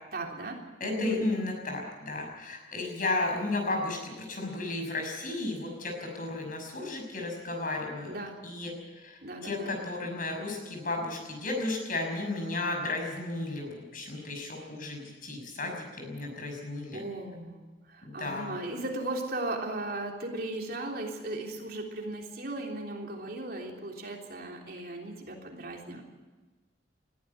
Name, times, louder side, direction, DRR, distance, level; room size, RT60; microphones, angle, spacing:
voice 1, 0.1-1.3 8.1-8.4 9.2-9.7 16.9-17.6 17.9-26.0, right 2 dB, 50° right, 1 dB, 3.4 m, -37 dB
voice 2, 0.8-8.1 8.4-17.0 18.0-18.6, left 2 dB, 45° left, 2 dB, 6.2 m, -34 dB
20.5 x 14.0 x 9.7 m, 1.3 s
head